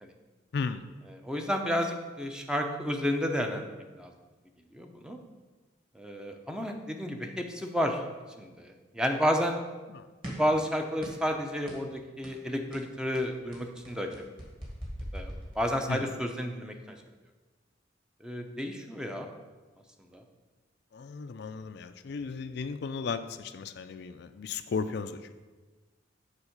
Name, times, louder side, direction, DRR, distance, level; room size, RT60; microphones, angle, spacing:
voice 1, 0.5-0.8 9.9-10.1 15.9-16.1 20.9-25.3, left 5 dB, 60° left, 10 dB, 0.4 m, -35 dB
voice 2, 1.2-4.1 4.7-5.2 6.0-8.0 8.4-9.6 10.2-14.1 15.1-17.0 18.2-19.3 20.1-20.2, equal, 5° right, 4 dB, 0.6 m, -31 dB
sound 1, 10.2-10.6 11.0-11.3 11.7-11.9 12.2-12.4 12.7-16.1, equal, 30° right, 2.0 m, -42 dB
7.2 x 4.5 x 6.5 m, 1.3 s
head